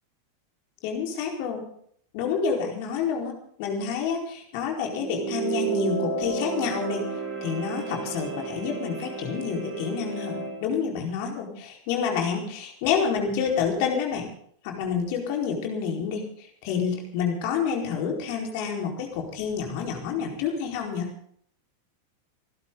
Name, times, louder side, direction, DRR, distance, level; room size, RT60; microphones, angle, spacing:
voice 1, 0.8-1.6 2.1-3.3 3.6-7.0 7.4-14.3 14.6-21.1, left 6 dB, 45° left, 1 dB, 4.6 m, -28 dB
sound 1, 4.9-10.6, right 5 dB, 35° right, 5.5 m, -32 dB
27.0 x 12.0 x 4.0 m, 0.62 s
figure-of-eight pair, 90°, 0 cm